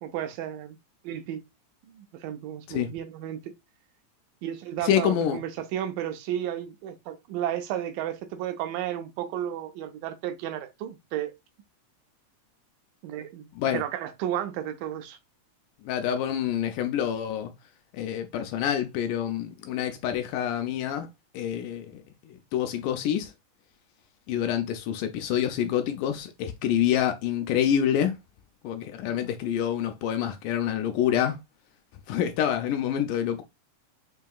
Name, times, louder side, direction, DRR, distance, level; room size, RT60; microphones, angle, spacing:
voice 1, 0.0-0.8 1.0-1.4 1.9-3.5 4.4-11.3 13.0-15.2 29.1-29.2, right 11 dB, 85° right, 2.2 m, -33 dB
voice 2, 4.8-5.4 13.6-13.8 15.8-17.5 17.9-21.1 21.3-23.3 24.3-28.1 28.6-31.4 32.1-33.4, left 10 dB, 80° left, 2.0 m, -27 dB
5.5 x 2.7 x 2.3 m
omnidirectional pair, 3.8 m